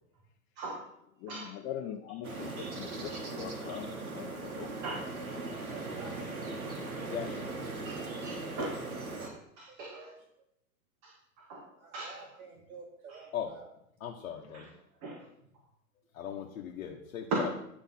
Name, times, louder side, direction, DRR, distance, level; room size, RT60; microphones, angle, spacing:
voice 1, 1.2-4.7, left 10 dB, 40° left, 2 dB, 0.7 m, -42 dB
sound 1, 2.2-9.3, right 3 dB, 90° right, 1.4 m, -39 dB
voice 2, 2.4-3.4 3.7-3.8 4.5-5.3 7.8-8.7 9.1-10.0 11.0-11.7 11.9-12.3 14.5-14.6 15.0-15.3 17.3-17.5, right 2 dB, 40° right, -1 dB, 1.8 m, -39 dB
voice 3, 5.2-7.1 9.7-10.2 11.8-13.7 17.5-17.6, right 4 dB, 65° right, -3 dB, 1.7 m, -51 dB
voice 4, 6.9-7.5 13.3-13.5 14.0-14.7 16.1-17.5, left 9 dB, 70° left, 0 dB, 1.0 m, -39 dB
10.5 x 3.5 x 5.8 m, 0.75 s
hypercardioid pair, 95°, 42 cm